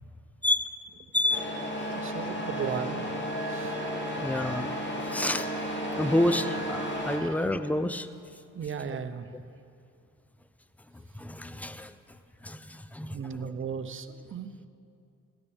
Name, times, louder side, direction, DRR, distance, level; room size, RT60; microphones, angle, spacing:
voice 1, 0.4-0.8 1.1-1.6 4.2-4.7 5.0-5.5 6.0-8.1 10.9-11.9 12.4-13.2, left 1 dB, 5° left, 12 dB, 0.5 m, -29 dB
Truck, 1.3-7.2, equal, 40° left, 2.5 m, -33 dB
voice 2, 1.9-3.1 3.5-3.9 7.2-7.3 8.5-9.3 13.1-14.7, right 6 dB, 40° right, 10 dB, 0.8 m, -36 dB
17.0 x 12.5 x 3.6 m, 2.6 s
cardioid pair, 90°, 30 cm